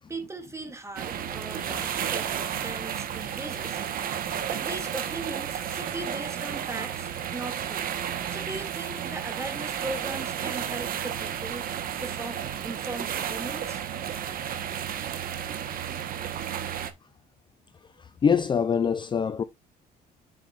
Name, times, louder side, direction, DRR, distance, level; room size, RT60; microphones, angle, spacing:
voice 1, 0.1-2.3 2.6-3.8 4.5-7.9 8.3-11.7 12.0-13.8, right 2 dB, 15° right, 2.3 m, -38 dB
sound 1, 1.0-16.9, right 9 dB, 60° right, 1.2 m, -32 dB
voice 2, 18.2-19.4, left 6 dB, 30° left, 0.5 m, -23 dB
7.7 x 6.9 x 2.5 m
cardioid pair, 110°, 17 cm